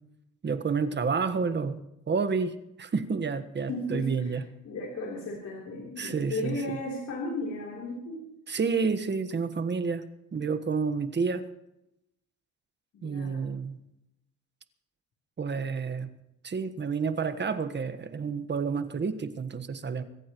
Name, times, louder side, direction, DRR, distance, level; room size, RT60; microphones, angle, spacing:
voice 1, 0.4-4.4 6.0-6.8 8.5-11.5 13.0-13.8 15.4-16.1 16.4-20.0, right 5 dB, 35° right, 10 dB, 1.4 m, -30 dB
voice 2, 3.7-4.4 4.6-8.3 12.9-13.5, left 2 dB, 65° left, -3 dB, 3.7 m, -35 dB
25.0 x 14.5 x 3.1 m, 0.86 s
cardioid pair, 90°, 30 cm